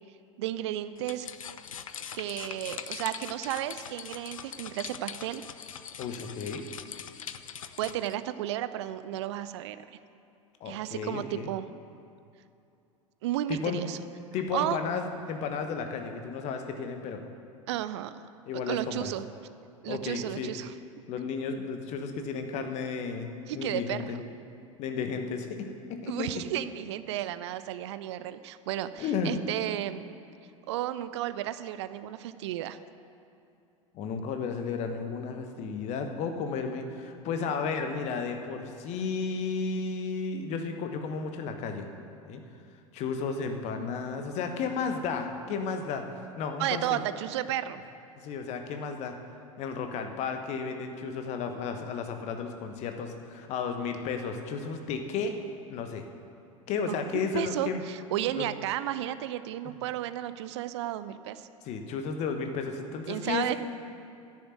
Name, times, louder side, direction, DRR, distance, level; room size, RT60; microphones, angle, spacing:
voice 1, 0.4-1.3 2.1-5.4 7.8-9.8 10.7-11.7 13.2-14.0 14.5-14.8 17.7-18.1 18.7-19.2 19.8-20.7 23.5-24.2 26.1-30.1 30.7-32.8 46.6-47.8 56.9-61.5 63.1-63.6, right 13 dB, 55° right, 13 dB, 0.5 m, -33 dB
sound 1, 1.0-8.1, left 8 dB, 75° left, 0.5 m, -42 dB
voice 2, 6.0-6.6 10.6-11.5 13.5-13.8 14.3-17.3 18.5-19.1 19.8-20.5 21.1-24.2 24.8-26.4 29.0-29.4 33.9-41.9 42.2-42.4 42.9-47.0 48.2-49.1 49.6-55.3 55.7-56.0 56.7-57.8 58.4-58.5 61.6-63.6, left 5 dB, 40° left, 6 dB, 1.2 m, -33 dB
10.0 x 6.9 x 9.2 m, 2.6 s
figure-of-eight pair, 80°, 17 cm